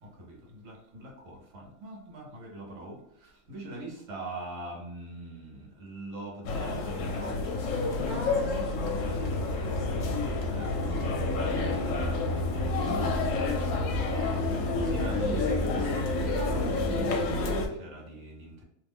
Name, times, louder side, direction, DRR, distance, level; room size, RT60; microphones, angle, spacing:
voice 1, 0.0-7.8 9.8-10.1 10.5-18.6, right 2 dB, 65° right, -1 dB, 1.2 m, -42 dB
sound 1, 6.4-17.7, left 3 dB, 70° left, 0.9 m, -30 dB
voice 2, 8.0-10.2 10.7-11.0, right 1 dB, 45° right, -1 dB, 0.5 m, -44 dB
sound 2, 9.0-17.0, equal, 20° left, 0.7 m, -34 dB
2.6 x 2.4 x 3.4 m, 0.76 s
omnidirectional pair, 1.5 m